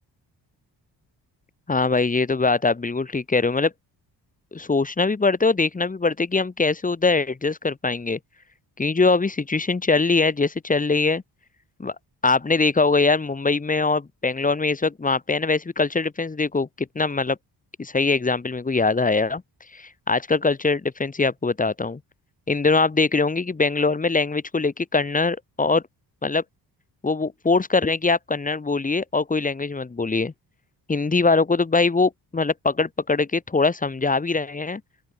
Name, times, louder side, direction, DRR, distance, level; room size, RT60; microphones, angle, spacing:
voice 1, 1.7-3.7 4.5-8.2 8.8-11.2 11.8-12.0 12.2-17.4 17.8-19.4 19.7-22.0 22.5-25.8 26.2-26.4 27.0-30.3 30.9-34.8, left 3 dB, 20° left, 5.4 m, -22 dB
open air
wide cardioid pair, 170°, 41 cm